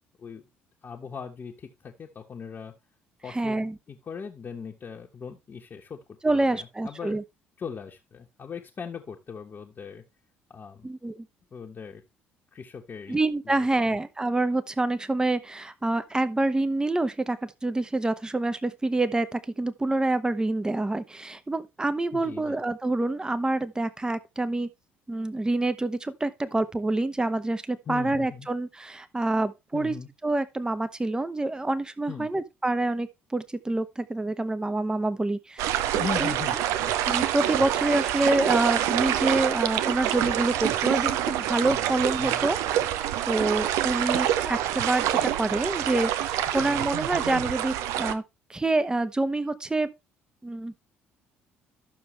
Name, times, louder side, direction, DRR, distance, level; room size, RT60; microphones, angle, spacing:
voice 1, 0.8-2.7 3.2-7.2 7.6-10.0 10.5-10.9 11.5-12.0 12.5-13.2 13.4-14.0 22.1-22.6 27.9-28.5 29.7-30.1 32.1-32.3 36.0-36.6 36.8-36.9 42.2-42.5, left 6 dB, 35° left, 1.3 m, -39 dB
voice 2, 3.3-3.8 6.2-7.2 10.8-11.3 13.1-24.7 25.1-29.9 30.2-35.7 36.2-36.3 37.1-42.6 43.3-48.2 48.5-49.9 50.4-50.8, right 2 dB, 15° right, 1.0 m, -27 dB
sound 1, 35.6-48.1, right 11 dB, 60° right, 0.7 m, -26 dB
12.0 x 6.7 x 3.2 m
figure-of-eight pair, 50°, 6 cm